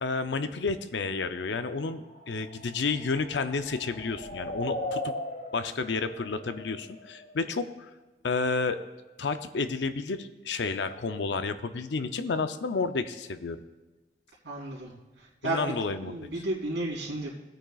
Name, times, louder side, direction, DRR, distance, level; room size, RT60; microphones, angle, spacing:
voice 1, 0.0-5.1 5.5-7.7 8.2-8.8 9.2-13.6 15.4-16.3, left 4 dB, 75° left, 10 dB, 0.5 m, -31 dB
sound 1, 1.6-7.4, left 1 dB, 40° left, 1.2 m, -39 dB
voice 2, 14.4-14.9 15.2-17.3, right 2 dB, 80° right, -5 dB, 3.2 m, -32 dB
17.5 x 8.9 x 2.4 m, 1.2 s
head